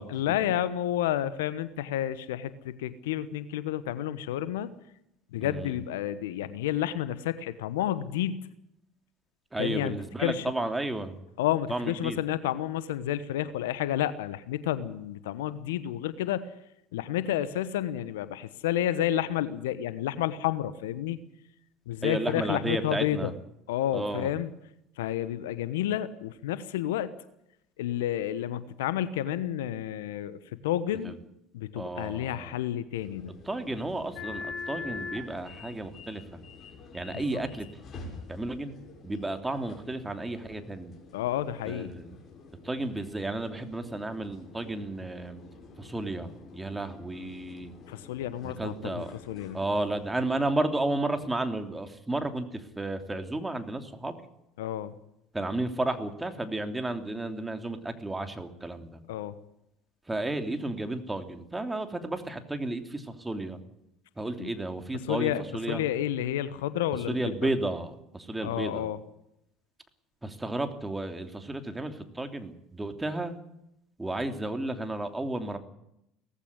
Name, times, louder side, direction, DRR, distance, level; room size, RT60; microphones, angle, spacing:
voice 1, 0.1-4.7 5.3-8.5 9.6-10.5 11.4-16.5 16.9-21.2 21.9-23.3 23.7-24.5 25.0-27.1 27.8-30.4 30.6-31.1 31.5-33.3 37.1-37.4 41.1-41.9 47.9-49.6 54.6-54.9 59.1-59.4 64.4-64.5 65.1-67.5 68.4-69.0, left 12 dB, 75° left, 15 dB, 1.0 m, -30 dB
voice 2, 5.4-5.8 9.5-11.2 11.7-12.2 22.0-23.3 23.9-24.3 31.0-31.1 31.7-32.5 33.4-36.2 36.9-37.8 38.3-38.7 39.0-40.9 41.7-42.2 42.6-45.4 45.8-47.7 48.4-49.1 49.5-54.1 55.3-59.0 60.1-63.6 64.2-65.8 67.1-68.9 70.2-73.4 74.0-75.6, right 2 dB, 10° right, 7 dB, 3.0 m, -32 dB
sound 1, 33.0-50.3, left 4 dB, 40° left, 6.8 m, -46 dB
18.5 x 15.0 x 9.6 m, 0.80 s
hypercardioid pair, 70°, 0 cm